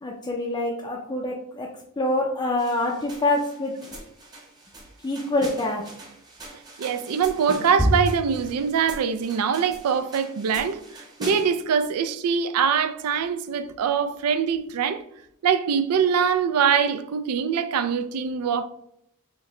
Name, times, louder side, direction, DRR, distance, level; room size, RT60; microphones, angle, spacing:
voice 1, 0.0-1.7 2.0-3.8 5.0-5.9, left 2 dB, 20° left, 0.4 m, -26 dB
sound 1, 2.6-11.6, right 1 dB, 20° right, 0.9 m, -34 dB
voice 2, 6.8-15.0 15.4-18.7, right 7 dB, 90° right, 0.4 m, -23 dB
6.2 x 2.1 x 3.0 m
head